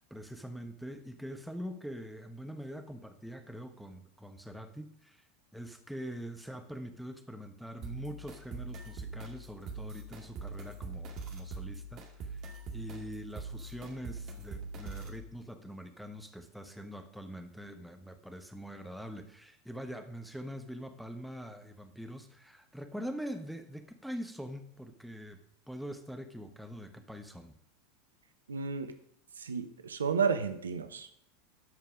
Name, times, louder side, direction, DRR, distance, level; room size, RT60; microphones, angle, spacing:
voice 1, 0.0-5.2 5.5-12.4 12.7-25.4 25.7-27.5, equal, ahead, 6 dB, 1.2 m, -44 dB
sound 1, 7.8-15.2, right 3 dB, 40° right, 2.1 m, -43 dB
voice 2, 28.5-28.9 29.4-31.2, right 5 dB, 80° right, 10 dB, 0.8 m, -32 dB
12.5 x 5.3 x 5.1 m, 0.68 s
figure-of-eight pair, 85°, 0 cm